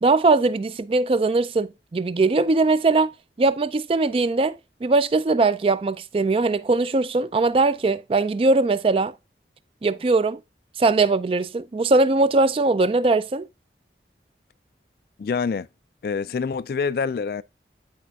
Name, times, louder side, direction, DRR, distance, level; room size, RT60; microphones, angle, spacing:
voice 1, 0.0-3.1 3.4-9.1 9.8-10.4 10.8-13.5, right 3 dB, 30° right, 0.3 m, -20 dB
voice 2, 15.2-15.7 16.0-17.4, left 5 dB, 55° left, 0.3 m, -26 dB
12.0 x 4.4 x 2.3 m
head